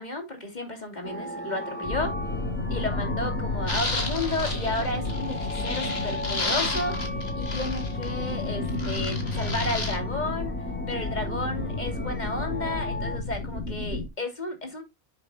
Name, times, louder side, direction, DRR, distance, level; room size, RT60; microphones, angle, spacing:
voice 1, 0.0-2.1 2.7-10.5 10.9-14.8, left 2 dB, 35° left, 2.9 m, -33 dB
sound 1, 1.0-13.2, left 1 dB, 10° left, 1.8 m, -36 dB
sound 2, 1.8-14.1, left 2 dB, 90° left, 1.9 m, -32 dB
sound 3, 3.7-8.3 8.7-10.0, left 2 dB, 55° left, 2.7 m, -33 dB
10.5 x 7.8 x 2.2 m
omnidirectional pair, 1.2 m